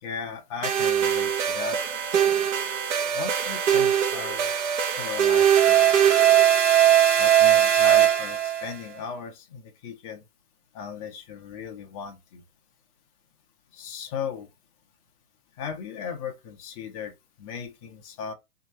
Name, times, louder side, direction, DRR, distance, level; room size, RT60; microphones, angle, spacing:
voice 1, 0.0-1.8 3.1-4.5 5.0-5.9 7.2-10.2 10.7-12.4 13.7-14.5 15.6-18.3, left 6 dB, 25° left, 0.8 m, -36 dB
sound 1, 0.6-8.7, right 10 dB, 55° right, 1.1 m, -20 dB
3.4 x 2.8 x 4.2 m
hypercardioid pair, 150°, 46 cm